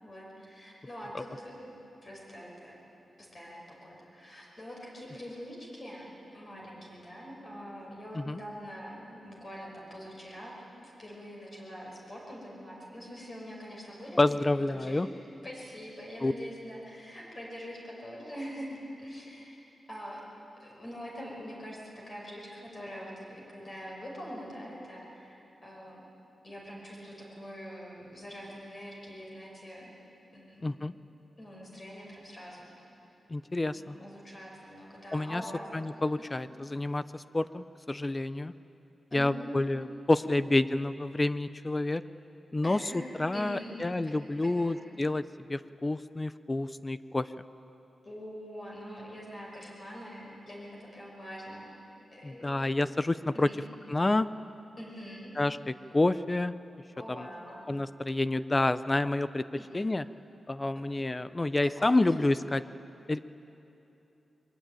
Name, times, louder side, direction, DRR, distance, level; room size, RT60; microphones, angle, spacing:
voice 1, 0.0-1.8 2.0-2.7 3.2-10.5 10.8-15.1 15.4-19.6 19.9-20.2 20.6-25.4 25.6-26.0 26.4-30.0 30.3-30.8 31.4-32.7 33.7-35.7 36.2-36.3 39.1-39.6 39.8-39.9 40.4-40.5 42.6-43.0 43.3-44.1 44.4-44.7 48.0-51.7 52.1-52.7 53.3-53.6 54.8-55.3 57.0-57.7 59.5-59.7 61.6-62.1, equal, 35° left, -3 dB, 5.8 m, -44 dB
voice 2, 14.2-15.1 16.2-16.3 30.6-30.9 33.3-34.0 35.1-35.4 35.7-38.5 39.1-42.0 42.5-42.8 43.2-45.2 45.5-47.3 52.2-53.5 53.9-54.3 55.4-56.5 57.2-57.3 57.7-59.5 59.7-60.0 60.5-62.6 63.1-63.2, left 2 dB, 20° left, 14 dB, 0.5 m, -28 dB
22.5 x 21.5 x 9.2 m, 3.0 s
wide cardioid pair, 135°, 0 cm